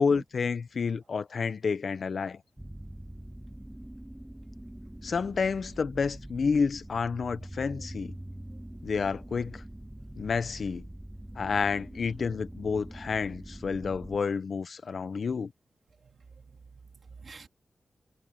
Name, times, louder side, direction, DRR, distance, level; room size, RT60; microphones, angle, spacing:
voice 1, 0.0-2.4 5.0-8.2 8.8-9.6 10.2-10.9 11.4-15.5, left 5 dB, 65° left, 0.8 m, -29 dB
sound 1, 2.6-14.2, right 1 dB, 10° right, 3.1 m, -44 dB
voice 2, 16.0-17.5, right 5 dB, 60° right, 3.7 m, -49 dB
wide cardioid pair, 130°, 0 cm